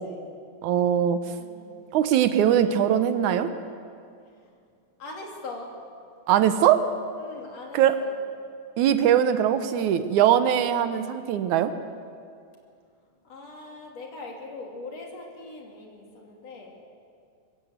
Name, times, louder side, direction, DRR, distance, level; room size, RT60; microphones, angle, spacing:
voice 1, 0.0-0.3 1.4-1.8 4.4-4.5 5.0-5.8 7.2-8.1 13.2-16.9, left 3 dB, 60° left, 0 dB, 3.8 m, -41 dB
voice 2, 0.6-1.2 1.9-3.5 6.3-6.9 7.7-8.0 8.8-11.7, right 10 dB, 80° right, 10 dB, 2.3 m, -21 dB
23.0 x 15.5 x 7.9 m, 2.3 s
omnidirectional pair, 3.4 m